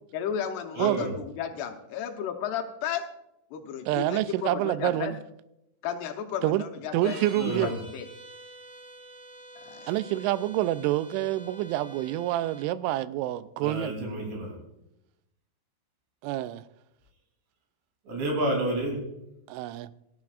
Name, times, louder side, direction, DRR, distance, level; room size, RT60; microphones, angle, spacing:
voice 1, 0.1-3.0 3.5-5.1 5.8-8.0 9.6-9.9, left 8 dB, 75° left, 2.5 m, -34 dB
voice 2, 0.8-1.1 7.4-7.7 13.6-14.6 18.1-19.0, right 1 dB, 65° right, 5.3 m, -30 dB
voice 3, 3.9-5.2 6.4-6.6 6.9-7.7 9.9-13.9 16.2-16.6 19.5-19.9, right 15 dB, 85° right, 2.8 m, -27 dB
sound 1, 7.0-12.7, right 1 dB, 45° right, 1.8 m, -47 dB
16.5 x 13.5 x 2.4 m
omnidirectional pair, 5.7 m